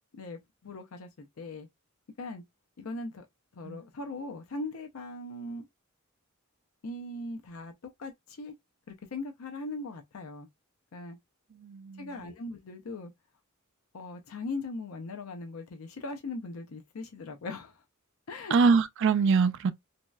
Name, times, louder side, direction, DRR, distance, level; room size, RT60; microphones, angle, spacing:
voice 1, 0.1-1.7 2.2-2.4 2.8-3.3 3.5-5.7 6.8-7.7 8.0-8.5 8.9-10.5 10.9-11.2 12.0-13.1 13.9-17.8 18.3-18.7, left 2 dB, 85° left, 0.5 m, -39 dB
voice 2, 11.6-12.1 18.5-19.7, right 5 dB, 60° right, 0.4 m, -24 dB
3.0 x 2.7 x 2.2 m
head